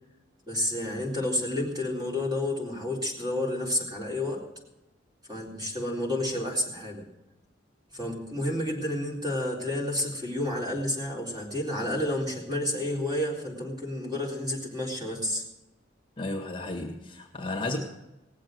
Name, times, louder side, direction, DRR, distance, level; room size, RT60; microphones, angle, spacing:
voice 1, 0.5-4.4 5.3-7.0 7.9-15.4, left 1 dB, 20° right, -2 dB, 3.9 m, -30 dB
voice 2, 16.2-17.8, left 2 dB, 25° left, 3 dB, 1.7 m, -33 dB
19.0 x 7.6 x 7.8 m, 0.93 s
head